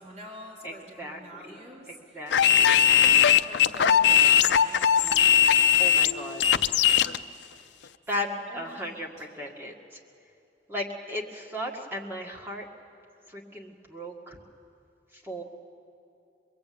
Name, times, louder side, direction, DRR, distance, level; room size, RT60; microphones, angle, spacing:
voice 1, 0.0-6.3 6.6-7.6 8.2-9.3, equal, 40° right, -4 dB, 4.3 m, -47 dB
voice 2, 1.0-1.6 2.1-2.8 5.0-5.4 5.8-6.6 8.1-8.3 8.5-10.0 10.7-12.6 13.3-14.4 15.2-15.4, left 1 dB, 15° right, -1 dB, 2.0 m, -36 dB
sound 1, 2.3-7.2, left 9 dB, 75° left, 0.5 m, -20 dB
24.0 x 21.5 x 8.6 m, 2.6 s
head